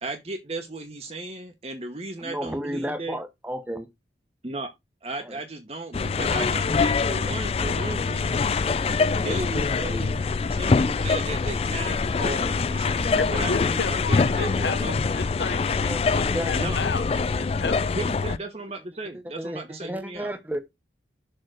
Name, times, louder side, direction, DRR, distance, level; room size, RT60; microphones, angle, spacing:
voice 1, 0.0-3.2 4.4-4.7 5.0-8.7 9.1-15.0 16.6-16.8 17.9-20.3, right 2 dB, 35° right, 1.0 m, -35 dB
voice 2, 2.2-3.9 5.2-5.4 15.8-16.6 19.4-20.6, equal, 10° right, 1.0 m, -32 dB
sound 1, 5.9-18.4, left 4 dB, 35° left, 0.3 m, -24 dB
voice 3, 13.2-17.9, left 4 dB, 75° left, 0.8 m, -33 dB
6.7 x 3.7 x 6.1 m
head